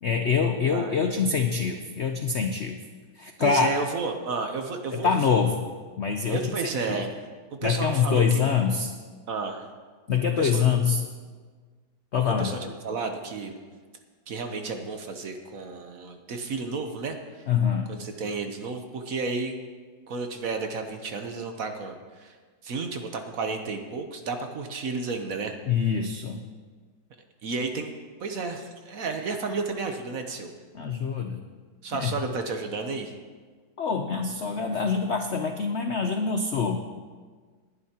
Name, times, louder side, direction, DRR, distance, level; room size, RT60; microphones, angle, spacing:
voice 1, 0.0-2.8 3.2-3.7 4.9-5.7 6.0-6.5 6.9-7.0 7.6-8.9 10.1-11.0 12.1-12.5 17.5-17.9 25.7-26.4 30.7-31.4 31.9-32.1 33.8-36.8, left 6 dB, 80° left, 6 dB, 0.6 m, -25 dB
voice 2, 0.7-1.5 3.4-5.2 6.3-7.1 7.5-8.2 9.3-9.7 10.4-10.6 12.4-13.6 14.3-17.5 17.9-19.5 20.1-22.4 22.6-25.5 27.4-27.9 28.2-30.5 31.8-33.1, right 4 dB, 55° right, 5 dB, 1.1 m, -32 dB
19.5 x 11.0 x 2.9 m, 1.5 s
omnidirectional pair, 2.0 m